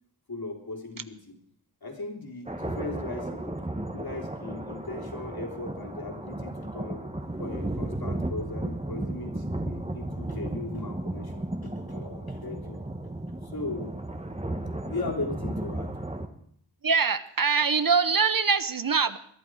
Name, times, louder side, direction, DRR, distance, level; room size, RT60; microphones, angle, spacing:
voice 1, 0.3-1.4 1.8-3.5 3.9-7.1 7.4-12.8 13.4-13.9 14.9-15.9, left 3 dB, 50° left, 0 dB, 3.6 m, -38 dB
sound 1, 2.5-16.3, right 1 dB, 15° right, 1.4 m, -34 dB
voice 2, 16.8-19.2, right 5 dB, 45° right, 13 dB, 0.8 m, -23 dB
21.5 x 11.5 x 4.8 m, 0.64 s
wide cardioid pair, 60°, 46 cm